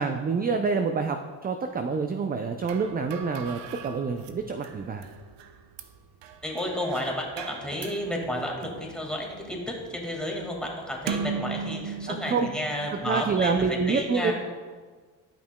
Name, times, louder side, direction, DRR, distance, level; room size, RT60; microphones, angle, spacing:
voice 1, 0.0-5.0 12.1-12.5 13.0-14.3, right 5 dB, 20° right, 6 dB, 0.4 m, -27 dB
sound 1, 2.6-13.6, right 6 dB, 70° right, 0.7 m, -39 dB
voice 2, 6.4-14.3, left 1 dB, ahead, -1 dB, 1.8 m, -32 dB
11.5 x 5.5 x 2.2 m, 1.5 s
supercardioid pair, 60°, 46 cm